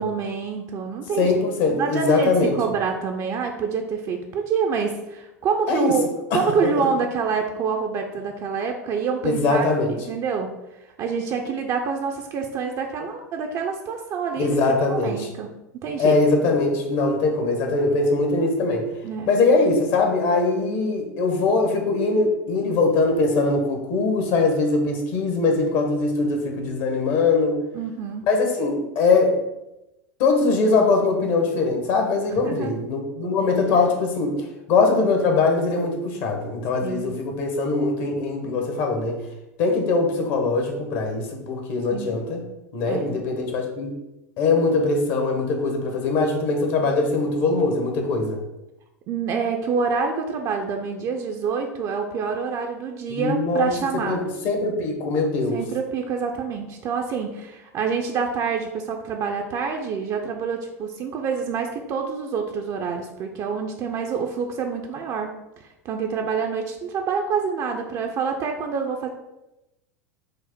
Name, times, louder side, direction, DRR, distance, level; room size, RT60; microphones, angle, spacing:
voice 1, 0.0-1.3 1.7-6.1 6.3-10.5 11.0-16.2 19.0-19.3 27.7-28.3 32.4-32.8 36.8-37.1 41.9-42.1 42.9-43.1 49.1-54.2 55.5-65.3 65.6-69.1, right 5 dB, 40° right, 3 dB, 0.5 m, -27 dB
voice 2, 1.2-2.6 5.7-6.0 6.3-6.4 6.8-6.9 9.2-10.0 14.4-15.3 16.0-18.9 19.3-27.6 28.3-29.4 30.2-39.3 39.6-42.4 42.7-44.0 44.4-48.4 53.1-53.7 54.1-55.6, left 3 dB, 55° left, 3 dB, 1.0 m, -22 dB
5.0 x 2.0 x 4.3 m, 0.94 s
hypercardioid pair, 85°, 9 cm